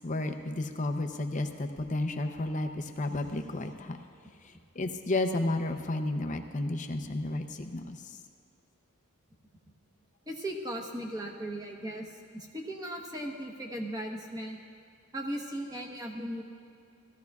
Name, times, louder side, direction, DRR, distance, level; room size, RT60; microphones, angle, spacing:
voice 1, 0.0-4.0 4.4-8.2, left 2 dB, 35° left, 5 dB, 0.6 m, -32 dB
voice 2, 10.3-14.6 15.1-16.4, right 1 dB, 15° right, 1 dB, 1.0 m, -37 dB
18.0 x 14.0 x 2.4 m, 2.5 s
head